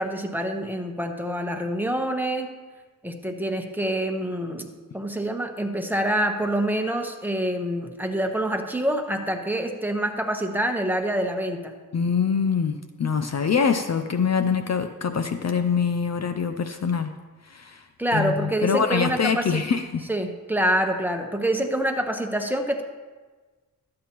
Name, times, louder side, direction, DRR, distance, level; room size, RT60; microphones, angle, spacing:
voice 1, 0.0-2.5 3.0-11.7 18.0-19.6 20.1-22.8, right 1 dB, 5° right, 4 dB, 1.1 m, -26 dB
voice 2, 11.9-17.1 17.4-17.9 18.1-20.1, left 6 dB, 45° left, 8 dB, 0.6 m, -24 dB
12.5 x 8.6 x 3.0 m, 1.3 s
cardioid pair, 55°, 36 cm